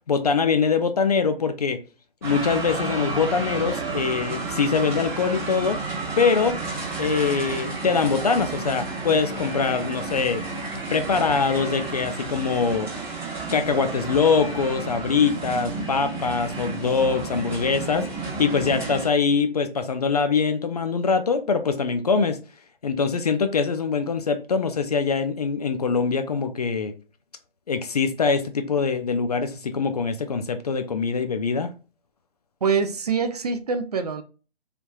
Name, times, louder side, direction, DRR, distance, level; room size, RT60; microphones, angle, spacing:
voice 1, 0.1-1.8 2.2-5.8 6.2-6.6 7.0-10.4 10.9-12.9 13.5-22.4 22.8-26.9 27.7-31.7, left 5 dB, 40° left, 0.4 m, -23 dB
sound 1, 2.2-19.1, right 3 dB, 10° right, 1.5 m, -31 dB
voice 2, 32.6-34.2, right 5 dB, 45° right, 0.4 m, -24 dB
3.3 x 3.0 x 2.3 m
figure-of-eight pair, 145°, 30 cm